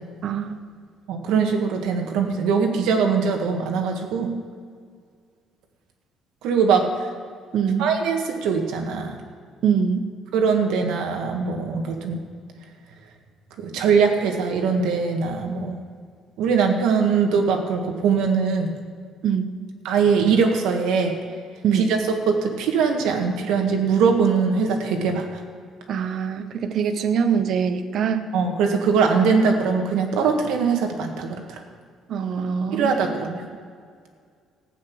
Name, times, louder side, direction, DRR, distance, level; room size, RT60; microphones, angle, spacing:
voice 1, 0.2-0.5 7.5-7.8 9.6-10.1 19.2-19.5 21.6-21.8 25.9-28.3 32.1-32.9, right 7 dB, 50° right, 9 dB, 0.9 m, -23 dB
voice 2, 1.1-4.3 6.4-6.9 7.8-9.2 10.3-12.2 13.6-15.8 16.4-18.7 19.8-21.2 21.7-22.0 22.3-25.4 28.3-31.6 32.7-33.4, right 5 dB, 85° right, 3 dB, 1.8 m, -21 dB
15.0 x 9.1 x 6.2 m, 2.1 s
cardioid pair, 150°, 0 cm